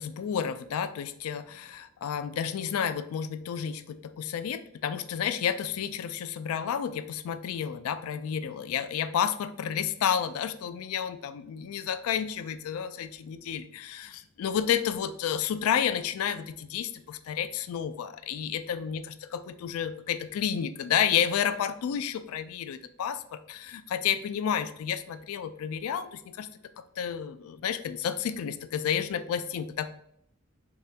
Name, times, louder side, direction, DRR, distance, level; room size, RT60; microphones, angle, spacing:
voice 1, 0.0-19.0 19.3-26.5 27.0-29.9, left 8 dB, 85° left, 13 dB, 0.3 m, -31 dB
4.0 x 3.5 x 2.7 m, 0.72 s
head